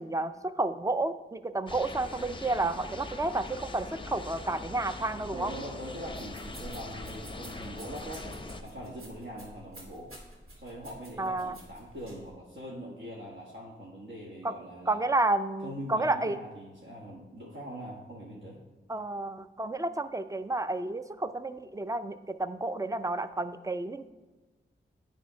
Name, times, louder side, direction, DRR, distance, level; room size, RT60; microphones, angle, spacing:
voice 1, 0.0-5.5 11.2-11.6 14.4-14.5 14.9-16.4 18.9-24.1, right 2 dB, 15° right, 11 dB, 0.4 m, -31 dB
sound 1, 1.7-8.6, left 2 dB, 25° left, 0.6 m, -42 dB
voice 2, 5.3-10.1 10.6-15.0 15.6-18.6, equal, 60° right, -5 dB, 1.5 m, -42 dB
sound 2, 6.0-12.3, right 1 dB, 90° right, 2.4 m, -49 dB
8.4 x 3.5 x 5.6 m, 1.2 s
cardioid pair, 50°, 21 cm